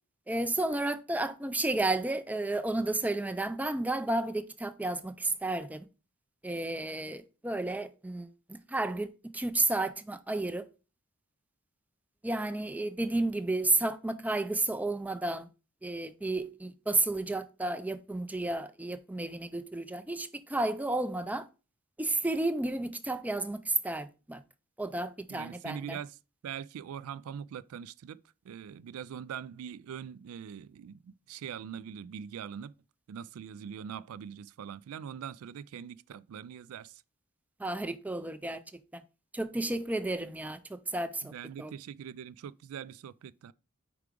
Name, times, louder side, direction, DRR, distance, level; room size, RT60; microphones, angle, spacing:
voice 1, 0.3-5.8 6.4-10.7 12.2-15.5 15.8-21.5 22.0-24.4 24.8-26.0 37.6-38.6 38.9-39.0 39.3-41.3 41.6-41.7, right 2 dB, 5° right, 0.3 m, -32 dB
voice 2, 25.3-26.2 26.4-28.2 28.4-32.7 33.1-37.0 41.2-43.5, right 8 dB, 85° right, 0.3 m, -42 dB
4.7 x 4.7 x 5.0 m
head